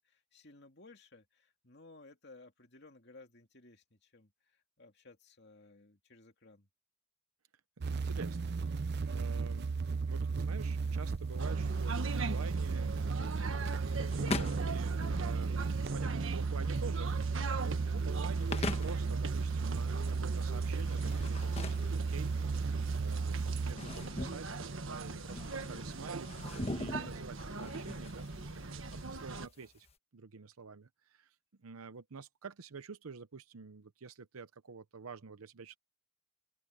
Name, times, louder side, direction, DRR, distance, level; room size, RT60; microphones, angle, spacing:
voice 1, 0.0-6.7 23.6-24.0, left 3 dB, 50° left, 2.5 m, -58 dB
sound 1, 7.8-23.7, right 4 dB, 50° right, 0.5 m, -34 dB
voice 2, 7.9-9.7 10.1-15.7 15.9-22.3 22.9-29.9 30.1-35.8, right 5 dB, 80° right, 0.7 m, -48 dB
sound 2, 10.7-29.9, left 2 dB, 30° left, 1.3 m, -44 dB
sound 3, 11.4-29.5, right 3 dB, 65° right, 1.5 m, -41 dB
open air
head